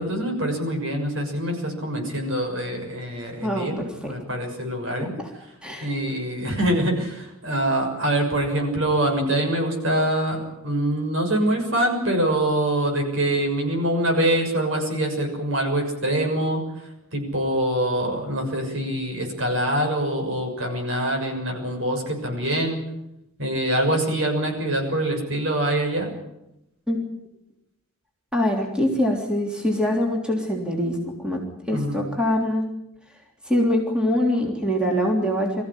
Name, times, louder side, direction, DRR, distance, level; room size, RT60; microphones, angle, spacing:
voice 1, 0.0-5.1 5.8-16.6 17.1-22.8 23.4-26.1 31.7-32.1, right 1 dB, 60° right, 2 dB, 6.5 m, -24 dB
voice 2, 3.4-4.1 5.0-5.3 5.6-5.9 26.9-27.0 28.3-32.7 33.4-35.6, left 1 dB, 5° right, 0 dB, 3.3 m, -24 dB
24.0 x 15.0 x 10.0 m, 0.86 s
head